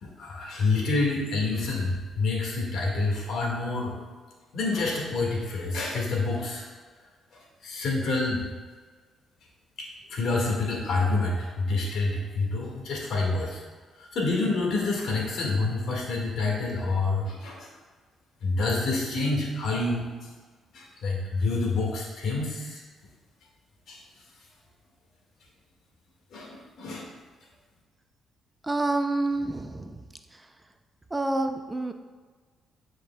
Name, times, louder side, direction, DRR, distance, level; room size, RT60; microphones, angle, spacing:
voice 1, 0.0-3.9 4.5-6.6 7.3-8.5 9.8-13.6 14.0-17.7 18.4-20.3 20.7-22.8 23.9-24.0 26.3-27.1, left 3 dB, 70° left, -2 dB, 1.8 m, -28 dB
voice 2, 28.7-30.0 31.1-31.9, right 2 dB, 15° right, 7 dB, 0.4 m, -27 dB
9.4 x 5.1 x 2.3 m, 1.4 s
cardioid pair, 90°, 0 cm